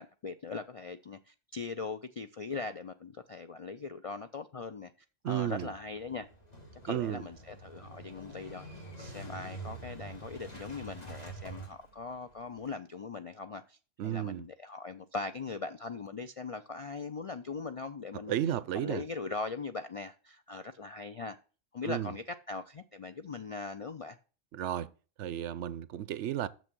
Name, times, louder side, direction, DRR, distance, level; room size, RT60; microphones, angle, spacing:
voice 1, 0.0-4.9 5.2-6.3 6.8-13.8 14.0-18.3 18.7-21.4 21.7-24.2, left 4 dB, 55° left, 0.3 m, -40 dB
voice 2, 5.2-5.7 6.9-7.2 14.0-14.4 18.3-19.0 21.8-22.1 24.5-24.9 25.2-26.5, right 11 dB, 75° right, 0.9 m, -33 dB
Motorcycle / Engine starting, 5.5-12.7, right 2 dB, 35° left, 2.5 m, -47 dB
6.9 x 6.2 x 6.0 m
omnidirectional pair, 1.2 m